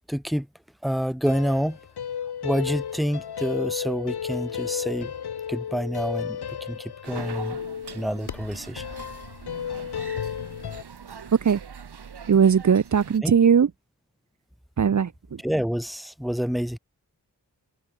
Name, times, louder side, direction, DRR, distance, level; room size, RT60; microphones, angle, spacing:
voice 1, 0.1-0.5 0.8-1.8 2.4-5.1 5.5-6.4 6.7-7.6 7.9-8.8 13.2-13.3 15.4-16.8, equal, ahead, 0.5 m, -27 dB
sound 1, 1.3-10.8, left 8 dB, 80° left, 1.3 m, -33 dB
sound 2, 7.0-13.2, right 6 dB, 90° right, 4.0 m, -42 dB
voice 2, 12.3-13.7 14.8-15.4, right 7 dB, 50° right, 0.7 m, -19 dB
cardioid pair, 60°, 38 cm